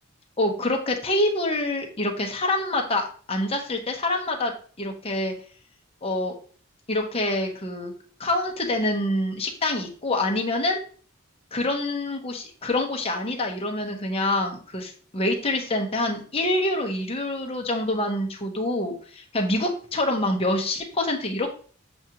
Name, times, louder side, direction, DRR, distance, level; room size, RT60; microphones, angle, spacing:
voice 1, 0.4-4.5 4.8-5.3 6.0-6.3 6.9-7.9 8.2-10.8 11.5-21.5, left 1 dB, 30° left, 2 dB, 0.8 m, -26 dB
7.0 x 2.4 x 2.8 m, 0.43 s
head